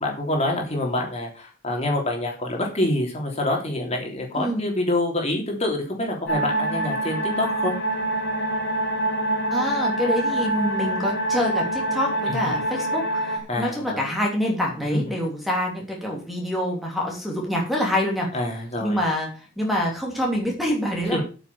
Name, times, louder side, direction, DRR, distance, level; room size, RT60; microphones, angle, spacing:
voice 1, 0.0-7.7 12.3-12.5 13.5-14.1 14.9-15.0 18.3-19.0 21.1-21.2, left 1 dB, 30° left, 0 dB, 3.3 m, -26 dB
sound 1, 6.3-13.4, right 1 dB, 55° left, 3.9 m, -25 dB
voice 2, 9.5-18.3 18.8-21.2, left 1 dB, ahead, -1 dB, 3.2 m, -26 dB
9.0 x 6.9 x 7.1 m, 0.36 s
head